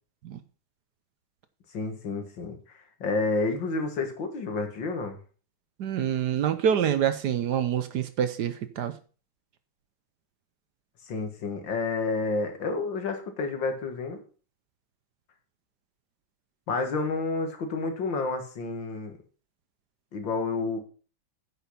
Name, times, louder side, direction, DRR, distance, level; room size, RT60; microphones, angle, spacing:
voice 1, 1.7-5.2 11.0-14.2 16.7-19.2 20.1-20.8, left 3 dB, 70° left, 2.4 m, -30 dB
voice 2, 5.8-8.9, right 9 dB, 65° right, 1.3 m, -26 dB
9.5 x 6.0 x 5.7 m
omnidirectional pair, 2.1 m